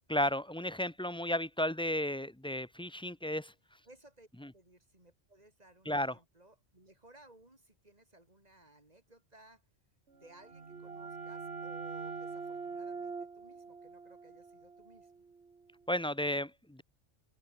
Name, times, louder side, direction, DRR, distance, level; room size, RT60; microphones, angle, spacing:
voice 1, 0.1-3.5 4.4-4.5 5.9-6.1 15.9-16.8, left 1 dB, 5° left, 0.8 m, -33 dB
voice 2, 3.8-9.6 10.1-15.1, right 1 dB, 35° right, 5.5 m, -60 dB
sound 1, 10.2-15.7, right 4 dB, 70° right, 2.1 m, -44 dB
omnidirectional pair, 1.2 m